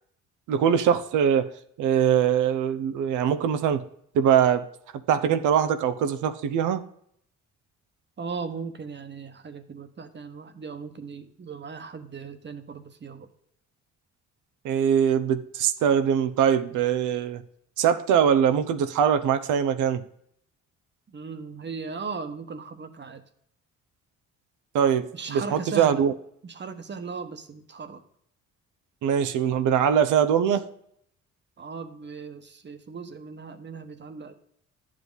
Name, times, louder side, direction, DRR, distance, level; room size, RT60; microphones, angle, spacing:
voice 1, 0.5-1.5 1.8-3.8 4.1-4.7 5.1-6.8 14.6-17.4 17.8-20.0 24.7-26.1 29.0-30.6, right 8 dB, 85° right, 10 dB, 0.8 m, -22 dB
voice 2, 8.2-13.3 21.1-23.2 25.1-26.1 26.4-28.0 31.6-34.3, right 5 dB, 35° right, 9 dB, 1.2 m, -37 dB
11.0 x 7.6 x 4.0 m, 0.69 s
cardioid pair, 90°, 30 cm